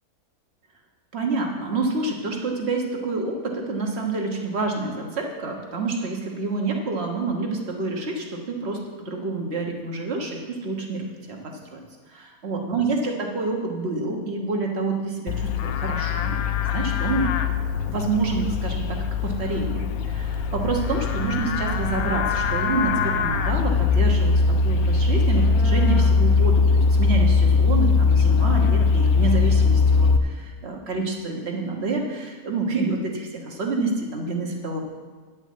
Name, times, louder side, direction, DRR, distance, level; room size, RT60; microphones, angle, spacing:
voice 1, 1.1-11.8 12.1-16.4 16.7-24.3 24.6-34.8, right 3 dB, 45° right, 1 dB, 1.5 m, -28 dB
Livestock farm animals working animals, 15.3-30.2, left 4 dB, 70° left, 1.1 m, -21 dB
9.9 x 5.4 x 8.3 m, 1.5 s
omnidirectional pair, 1.7 m